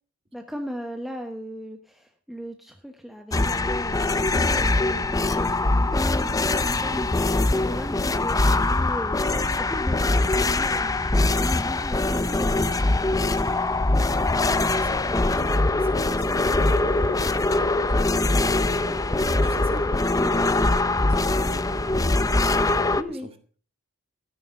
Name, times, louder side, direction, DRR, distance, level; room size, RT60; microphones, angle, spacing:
voice 1, 0.3-13.2 15.1-15.3 20.2-20.3 22.9-23.3, equal, ahead, 4 dB, 1.0 m, -37 dB
sound 1, 3.3-23.0, left 2 dB, 15° left, 0.5 m, -22 dB
voice 2, 5.9-6.2 6.8-7.1 14.7-15.2 15.4-23.6, right 1 dB, 25° right, 7 dB, 2.0 m, -44 dB
13.5 x 9.6 x 5.8 m, 0.43 s
head